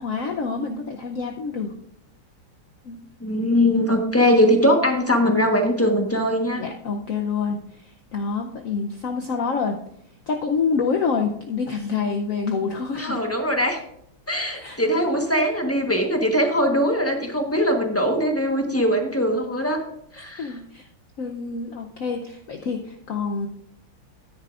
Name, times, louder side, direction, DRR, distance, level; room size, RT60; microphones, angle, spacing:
voice 1, 0.0-1.7 2.8-3.0 6.6-9.8 10.3-13.2 14.6-14.8 20.4-20.9 21.2-23.5, left 5 dB, 70° left, 3 dB, 0.7 m, -27 dB
voice 2, 3.2-6.6 12.9-13.8 14.3-19.8 20.1-20.5, equal, 10° left, 3 dB, 0.7 m, -21 dB
13.5 x 10.0 x 2.5 m, 0.73 s
omnidirectional pair, 2.3 m